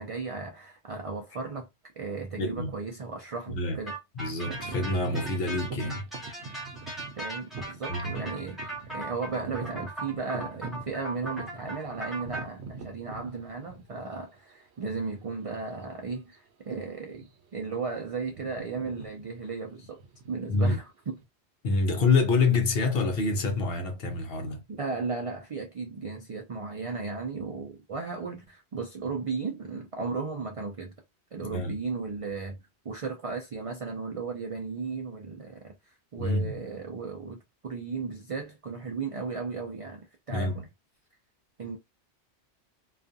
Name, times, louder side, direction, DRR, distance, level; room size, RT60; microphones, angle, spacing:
voice 1, 0.0-1.7 2.0-3.9 7.2-20.0 20.3-21.2 24.7-30.9 31.3-32.6 32.8-37.4 37.6-40.7 41.6-41.8, right 4 dB, 60° right, 0.3 m, -35 dB
voice 2, 2.4-2.7 3.5-3.8 4.2-6.0 7.9-8.1 20.5-20.8 21.6-24.6 31.4-31.8 36.2-36.5 40.3-40.6, left 3 dB, 60° left, 0.8 m, -26 dB
sound 1, 3.9-12.4, right 1 dB, ahead, 0.9 m, -39 dB
sound 2, 4.4-14.2 14.9-15.0 15.6-15.8 16.1-16.4 17.0-17.6 17.8-21.2, right 4 dB, 75° right, 0.8 m, -43 dB
2.4 x 2.3 x 2.5 m
omnidirectional pair, 1.1 m